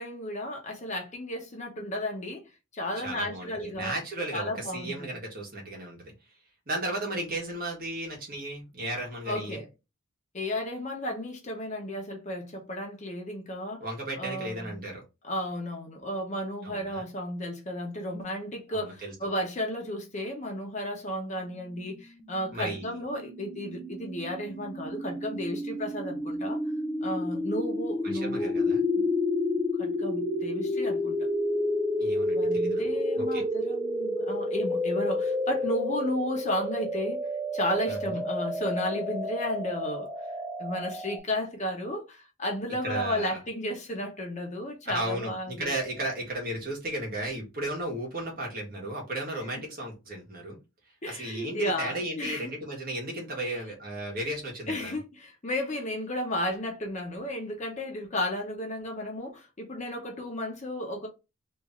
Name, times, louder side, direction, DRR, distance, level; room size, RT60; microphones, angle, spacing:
voice 1, 0.0-2.4 2.7-4.0 4.3-5.1 9.3-9.7 10.3-13.8 14.2-14.8 15.2-26.6 27.0-28.5 29.0-29.1 29.8-31.3 32.3-37.2 37.5-40.1 40.6-45.7 51.0-52.5 53.5-53.6 54.7-61.1, left 1 dB, 35° left, 0.9 m, -33 dB
voice 2, 3.0-6.1 6.7-9.6 13.8-15.0 16.6-17.0 18.7-19.1 22.5-23.0 28.0-28.8 32.0-32.8 33.1-33.4 37.9-38.2 42.8-43.4 44.8-50.6 51.1-55.0, right 1 dB, 45° right, 1.5 m, -35 dB
sound 1, 22.0-41.2, left 1 dB, 10° right, 0.4 m, -30 dB
3.1 x 2.7 x 3.5 m
head